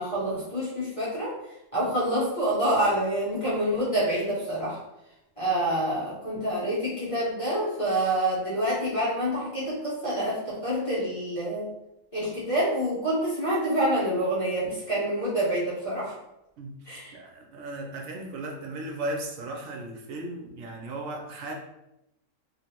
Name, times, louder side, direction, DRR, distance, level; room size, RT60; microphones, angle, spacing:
voice 1, 0.0-1.3 1.7-4.8 5.4-11.7 12.1-16.2 16.9-17.1, right 1 dB, 25° left, -9 dB, 1.1 m, -27 dB
voice 2, 17.1-21.5, right 2 dB, 90° right, 2 dB, 1.1 m, -36 dB
3.2 x 2.7 x 2.9 m, 0.87 s
omnidirectional pair, 1.4 m